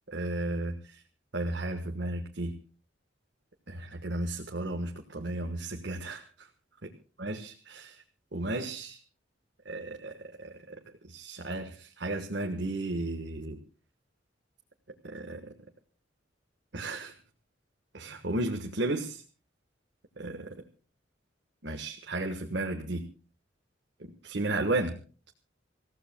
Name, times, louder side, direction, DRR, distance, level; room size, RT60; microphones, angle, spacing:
voice 1, 0.1-1.0 1.3-2.5 3.7-6.5 7.2-8.0 8.3-9.0 9.6-13.6 15.0-15.5 16.7-17.1 17.9-19.2 20.2-20.6 21.6-23.0 24.0-25.0, right 2 dB, 65° right, 3 dB, 1.5 m, -34 dB
28.0 x 15.5 x 2.3 m, 0.37 s
head